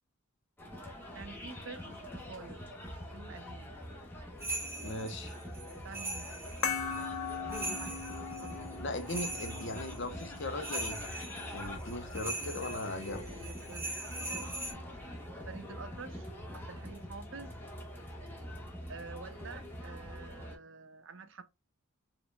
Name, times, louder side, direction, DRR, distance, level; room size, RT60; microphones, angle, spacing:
sound 1, 0.6-20.6, equal, 10° left, 1.3 m, -44 dB
voice 1, 1.1-2.7 3.1-3.7 5.8-6.3 7.4-7.9 8.4-8.6 13.2-14.5 15.4-17.5 18.9-21.4, right 4 dB, 55° right, 0.6 m, -48 dB
sound 2, 4.4-14.7, right 2 dB, 10° right, 1.5 m, -41 dB
voice 2, 4.8-5.3 8.8-11.0 11.5-13.3, left 1 dB, 55° left, 0.9 m, -38 dB
sound 3, 6.6-11.7, left 6 dB, 85° left, 1.1 m, -40 dB
4.6 x 3.9 x 2.3 m
head